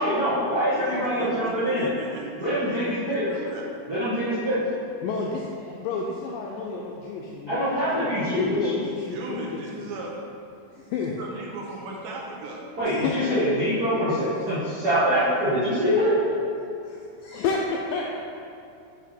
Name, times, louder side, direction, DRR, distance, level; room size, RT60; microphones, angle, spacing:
voice 1, 0.0-1.9 2.4-3.2 3.9-4.6 7.5-8.7 12.8-14.1 14.5-16.1, equal, 50° right, -12 dB, 1.1 m, -24 dB
voice 2, 0.8-3.7 9.1-10.2 11.2-12.7, right 3 dB, 75° right, -1 dB, 2.4 m, -37 dB
voice 3, 5.0-7.7 7.9-9.9 10.8-11.1 12.8-13.5 13.9-14.3 16.0-16.1 16.8-18.1, left 5 dB, 85° left, -1 dB, 1.9 m, -31 dB
6.0 x 6.0 x 4.3 m, 2.5 s
omnidirectional pair, 4.4 m